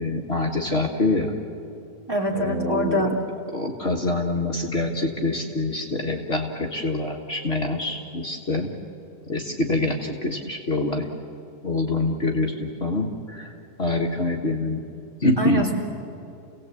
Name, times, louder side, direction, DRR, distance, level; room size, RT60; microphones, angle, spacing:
voice 1, 0.0-1.3 2.3-3.1 3.5-8.7 9.3-11.1 11.6-13.5 13.8-14.8 15.2-15.7, left 2 dB, 45° left, 1 dB, 1.8 m, -25 dB
voice 2, 2.1-3.1 15.4-15.7, equal, 15° right, -1 dB, 3.1 m, -24 dB
29.5 x 17.5 x 8.4 m, 2.6 s
omnidirectional pair, 1.6 m